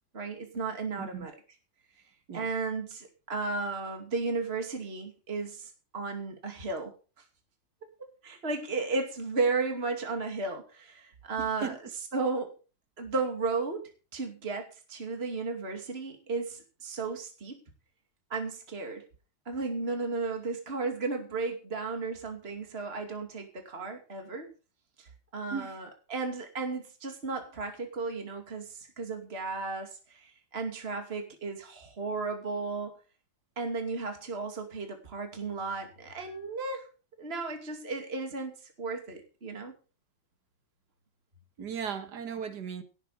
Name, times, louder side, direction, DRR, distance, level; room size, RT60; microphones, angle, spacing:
voice 1, 0.1-1.3 2.3-6.9 8.2-11.7 12.1-12.5 13.0-13.8 14.1-17.6 18.3-19.0 19.5-24.5 25.0-32.9 33.6-36.9 37.2-39.7, right 4 dB, 30° right, 2.7 m, -34 dB
voice 2, 1.0-1.3 2.3-2.5 11.4-11.8 25.5-25.8 41.6-42.8, right 7 dB, 60° right, 2.3 m, -37 dB
17.0 x 8.2 x 5.0 m
omnidirectional pair, 2.0 m